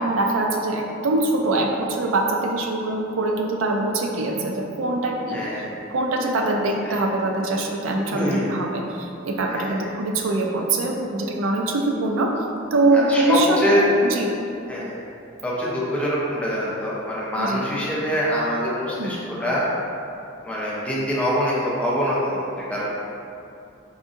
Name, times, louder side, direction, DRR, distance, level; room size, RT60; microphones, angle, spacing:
voice 1, 0.0-5.4 5.9-12.3 12.7-14.4 17.4-17.6 19.0-19.2, right 2 dB, 90° right, 1 dB, 0.4 m, -23 dB
voice 2, 5.3-5.7 6.9-7.0 8.1-8.4 9.5-9.9 12.9-13.8 14.7-14.9 15.4-19.6 20.4-22.8, equal, 5° left, -7 dB, 0.6 m, -24 dB
4.9 x 2.6 x 2.5 m, 2.6 s
head